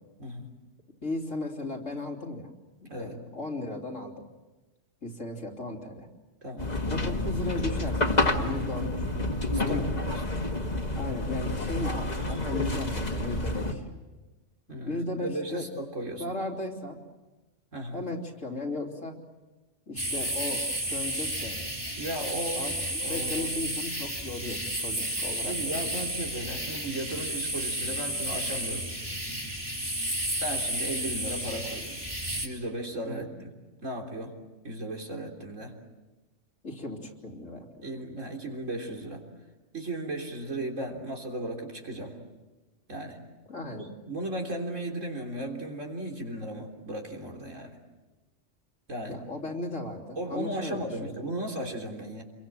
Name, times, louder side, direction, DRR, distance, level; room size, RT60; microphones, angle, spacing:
voice 1, 0.2-0.5 2.9-3.2 6.4-6.7 9.7-10.2 14.7-16.2 17.7-18.0 22.0-22.6 23.0-23.5 25.5-28.9 30.4-32.0 32.4-33.5 33.8-34.4 34.6-35.8 37.8-39.2 39.7-42.2 42.9-43.2 43.8-47.8 48.9-49.2 50.2-52.2, right 1 dB, 85° right, 1 dB, 3.9 m, -36 dB
voice 2, 1.0-2.5 2.8-4.3 5.0-6.1 6.9-9.8 10.9-13.8 14.8-15.6 16.2-17.0 17.9-19.1 19.9-21.7 22.6-26.0 33.1-33.3 36.6-37.9 43.5-43.9 49.1-51.1, left 2 dB, 80° left, 0 dB, 3.5 m, -36 dB
sound 1, 6.6-13.7, left 2 dB, 35° left, 2.0 m, -29 dB
sound 2, 20.0-32.5, right 1 dB, 20° right, 3.4 m, -32 dB
28.5 x 23.0 x 7.5 m, 1.2 s
omnidirectional pair, 1.3 m